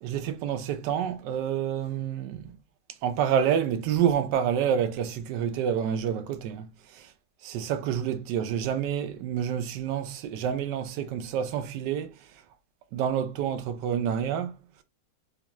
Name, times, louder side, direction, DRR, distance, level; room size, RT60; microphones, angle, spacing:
voice 1, 0.0-2.6 3.0-7.1 7.4-12.1 12.9-14.6, right 8 dB, 70° right, 1.1 m, -28 dB
4.3 x 2.2 x 2.9 m
omnidirectional pair, 2.2 m